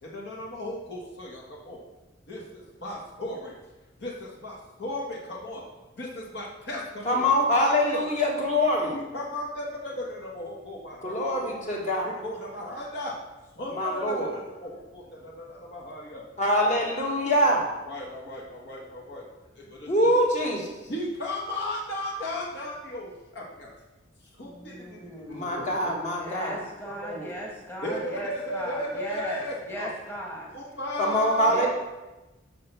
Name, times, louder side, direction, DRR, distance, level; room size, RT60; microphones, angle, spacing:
voice 1, 0.0-1.8 2.3-3.6 4.0-5.7 6.0-8.1 8.4-8.5 8.9-11.5 12.0-13.2 13.5-16.2 16.6-16.9 17.2-17.6 17.8-19.2 19.6-20.1 20.4-20.5 20.9-23.7 24.3-27.5 27.8-29.9 30.5-31.7, left 1 dB, 60° left, -2 dB, 1.5 m, -36 dB
voice 2, 7.1-9.0 11.0-12.1 13.8-14.3 16.4-17.6 19.9-20.6 25.3-26.6 31.0-31.7, equal, 40° left, -1 dB, 1.7 m, -24 dB
voice 3, 24.4-25.4 26.1-29.4 29.7-30.5 31.5-31.7, right 1 dB, 10° left, -2 dB, 1.4 m, -37 dB
6.8 x 5.6 x 6.7 m, 1.1 s
head